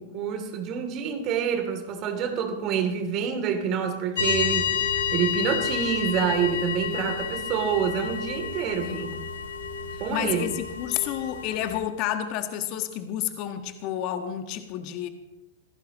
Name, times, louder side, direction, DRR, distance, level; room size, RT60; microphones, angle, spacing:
voice 1, 0.0-9.2 10.0-10.4, right 7 dB, 35° right, 6 dB, 3.0 m, -27 dB
sound 1, 4.2-11.8, left 7 dB, 65° left, 2.7 m, -30 dB
voice 2, 8.8-9.1 9.9-15.1, left 11 dB, 40° left, 8 dB, 1.6 m, -30 dB
26.0 x 17.0 x 3.1 m, 1.0 s
figure-of-eight pair, 100°, 0 cm